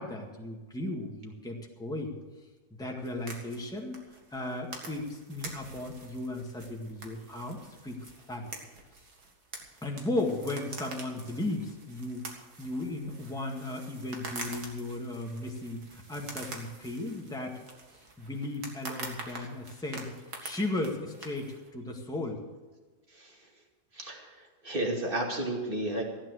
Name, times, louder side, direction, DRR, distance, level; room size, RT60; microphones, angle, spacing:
voice 1, 0.0-2.1 2.7-4.0 4.3-8.5 9.8-17.6 17.9-20.2 20.4-22.4, left 2 dB, ahead, -1 dB, 1.8 m, -36 dB
sound 1, 3.0-21.7, right 3 dB, 85° right, 2.5 m, -46 dB
voice 2, 23.9-24.3 24.6-26.0, right 1 dB, 35° right, 0 dB, 2.6 m, -32 dB
15.0 x 10.0 x 6.5 m, 1.3 s
omnidirectional pair, 1.6 m